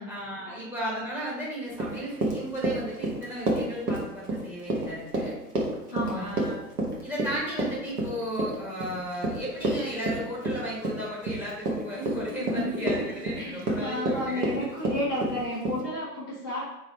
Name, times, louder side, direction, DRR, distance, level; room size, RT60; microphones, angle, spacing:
voice 1, 0.1-5.4 6.2-6.5 7.0-13.0 13.2-14.5, equal, 5° right, -4 dB, 1.3 m, -34 dB
Run, 1.7-15.8, right 1 dB, 65° right, 1.5 m, -30 dB
voice 2, 5.9-6.4 12.4-16.7, left 1 dB, 15° left, -13 dB, 0.3 m, -32 dB
3.9 x 3.1 x 4.4 m, 0.91 s
figure-of-eight pair, 110°, 49 cm